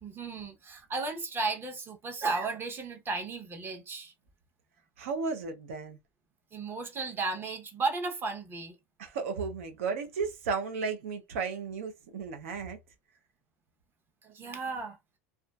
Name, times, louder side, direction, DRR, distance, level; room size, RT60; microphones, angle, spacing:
voice 1, 0.0-4.1 6.5-8.8 14.2-15.0, right 3 dB, 30° right, 0.8 m, -34 dB
voice 2, 5.0-6.0 9.0-12.8, right 5 dB, 80° right, 0.6 m, -34 dB
2.4 x 2.3 x 2.2 m
hypercardioid pair, 95°, 7 cm